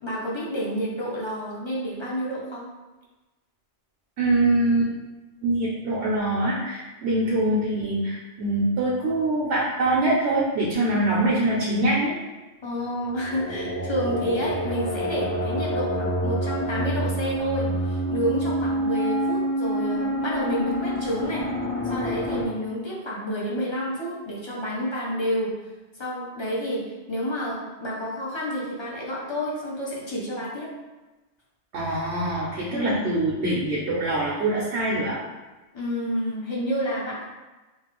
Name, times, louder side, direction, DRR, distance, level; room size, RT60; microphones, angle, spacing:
voice 1, 0.0-2.7 12.6-21.4 21.8-25.5 26.0-26.8 27.1-30.7 32.7-33.0 35.7-37.2, equal, 35° left, -5 dB, 0.5 m, -29 dB
voice 2, 4.2-4.9 5.4-12.2 31.7-35.2, right 1 dB, 85° right, -6 dB, 0.9 m, -24 dB
sound 1, 13.1-22.5, equal, 85° left, 1.2 m, -27 dB
3.1 x 2.4 x 2.9 m, 1.1 s
omnidirectional pair, 1.1 m